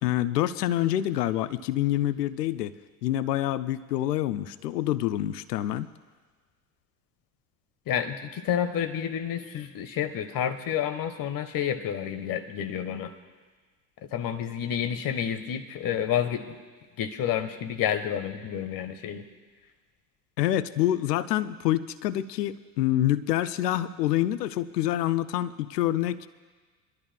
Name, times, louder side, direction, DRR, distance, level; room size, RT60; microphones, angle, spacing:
voice 1, 0.0-2.8 3.0-5.9 20.4-26.3, left 13 dB, 80° left, 15 dB, 0.6 m, -26 dB
voice 2, 7.9-13.1 14.1-16.6 17.0-19.2, left 9 dB, 45° left, 9 dB, 1.2 m, -29 dB
25.5 x 12.5 x 2.2 m, 1.4 s
figure-of-eight pair, 65°, 48 cm